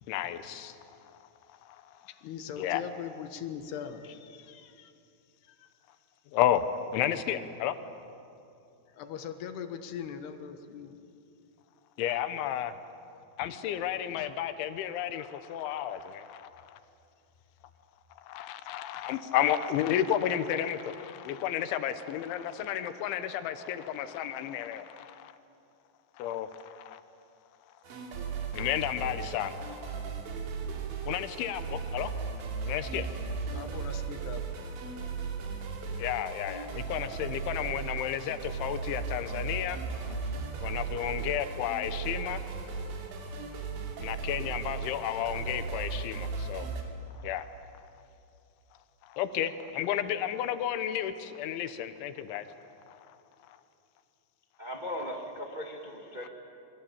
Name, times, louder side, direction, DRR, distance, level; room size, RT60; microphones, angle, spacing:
voice 1, 0.1-0.8 1.1-1.2 1.6-2.1 2.6-2.8 6.3-7.8 12.0-12.8 13.4-16.8 18.2-25.3 26.2-27.0 28.5-30.0 31.1-32.1 32.6-33.1 36.0-40.2 40.6-42.4 44.0-46.7 47.2-47.5 49.0-52.5 52.9-53.2 53.5-53.6 56.2-56.3, left 10 dB, 90° left, 11 dB, 3.5 m, -32 dB
voice 2, 2.1-4.9 5.4-5.7 8.9-11.0 13.4-13.5 14.2-14.3 32.9-33.0 33.5-34.5, left 8 dB, 70° left, 8 dB, 3.2 m, -41 dB
sound 1, 27.8-46.8, right 5 dB, 80° right, 4.9 m, -36 dB
voice 3, 54.6-56.3, left 1 dB, 60° right, 1 dB, 0.4 m, -38 dB
28.0 x 23.5 x 8.8 m, 2.6 s
omnidirectional pair, 5.2 m